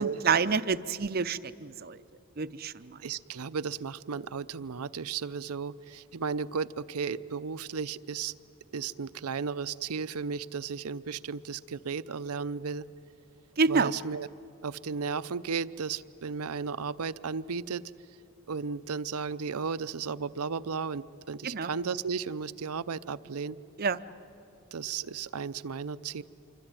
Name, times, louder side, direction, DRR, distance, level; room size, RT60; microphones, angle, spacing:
voice 1, 0.0-2.0 2.4-3.0 13.6-13.9 21.4-21.7 23.8-24.0, right 5 dB, 40° right, 13 dB, 0.6 m, -28 dB
voice 2, 3.0-8.3 8.7-12.9 13.7-14.3 14.6-17.9 18.5-23.6 24.7-26.2, right 5 dB, 85° right, 16 dB, 0.6 m, -34 dB
26.0 x 24.0 x 9.0 m, 3.0 s
head